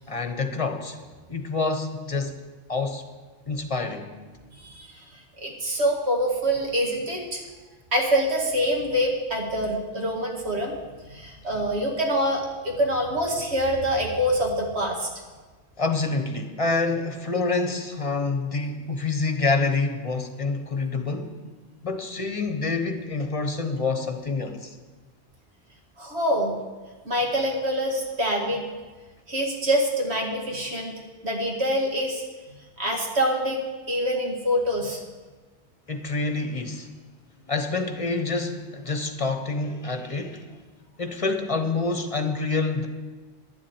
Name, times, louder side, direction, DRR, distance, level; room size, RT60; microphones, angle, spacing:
voice 1, 0.1-1.0 1.3-2.3 2.7-3.0 3.5-4.2 15.8-21.3 21.8-24.7 35.9-36.9 37.5-40.6 41.0-42.9, left 3 dB, 30° left, 6 dB, 1.1 m, -27 dB
voice 2, 4.5-5.0 5.4-7.4 7.9-10.7 11.1-15.1 26.0-26.6 27.1-28.6 29.3-30.9 31.2-32.2 32.5-35.0, equal, 80° right, -1 dB, 2.3 m, -25 dB
11.0 x 7.4 x 9.1 m, 1.3 s
omnidirectional pair, 1.1 m